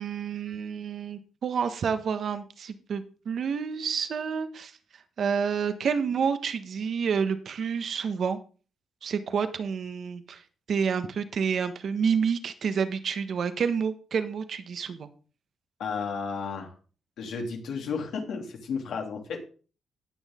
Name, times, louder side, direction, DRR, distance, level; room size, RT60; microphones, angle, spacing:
voice 1, 0.0-4.7 5.2-8.4 9.0-10.4 10.7-15.1, right 6 dB, 60° right, 10 dB, 1.3 m, -29 dB
voice 2, 15.8-16.7 17.2-19.4, left 5 dB, 80° left, 1 dB, 2.9 m, -33 dB
18.0 x 6.4 x 3.7 m, 0.37 s
cardioid pair, 95°, 0 cm